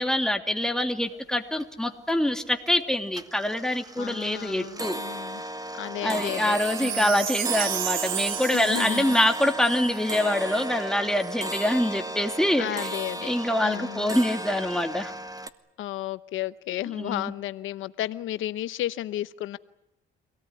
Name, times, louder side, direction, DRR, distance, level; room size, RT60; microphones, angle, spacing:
voice 1, 0.0-5.0 6.0-15.1 16.9-17.3, left 1 dB, 5° left, 5 dB, 2.8 m, -25 dB
sound 1, 1.1-1.2 1.5-2.1 2.5-2.8 3.1-15.5, right 1 dB, 20° right, 1.5 m, -35 dB
voice 2, 4.0-5.4 5.8-7.2 8.5-9.2 12.6-13.3 13.6-14.1 15.8-19.6, left 13 dB, 85° left, 14 dB, 0.9 m, -33 dB
Wind chime, 6.3-10.7 11.2-11.3, right 12 dB, 80° right, 1.3 m, -33 dB
26.0 x 18.0 x 9.6 m, 0.89 s
cardioid pair, 90°, 20 cm